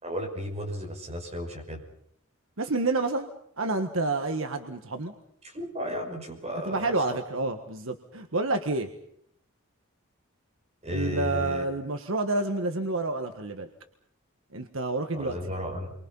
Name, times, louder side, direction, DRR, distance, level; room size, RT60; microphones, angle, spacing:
voice 1, 0.0-1.8 5.4-6.9 10.8-11.6 15.1-15.9, equal, 30° right, 1 dB, 6.0 m, -34 dB
voice 2, 2.6-3.3 3.6-5.1 6.7-8.9 10.9-13.7 14.5-15.4, right 2 dB, 65° right, 6 dB, 1.6 m, -29 dB
29.5 x 24.0 x 5.6 m, 0.70 s
head